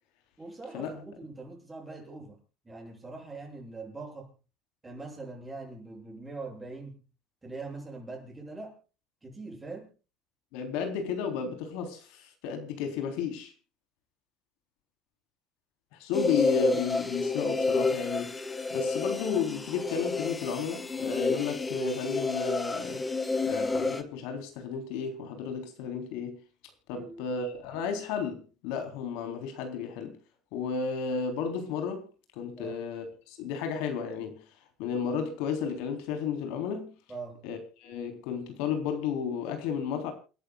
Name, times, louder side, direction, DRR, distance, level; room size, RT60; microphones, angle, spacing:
voice 1, 0.4-2.4 2.6-4.3 4.8-7.0 7.4-8.8 9.2-9.9 27.0-27.3 32.5-32.8 37.1-37.5, right 3 dB, 15° right, 7.4 m, -42 dB
voice 2, 10.5-13.5 15.9-18.3 18.7-23.0 23.4-26.4 26.9-30.2 30.5-32.0 32.4-34.4 34.8-36.9 37.4-40.1, left 6 dB, 85° left, 3.7 m, -33 dB
sound 1, 16.1-24.0, left 3 dB, 15° left, 1.4 m, -30 dB
29.0 x 11.5 x 2.3 m
cardioid pair, 130°, 0 cm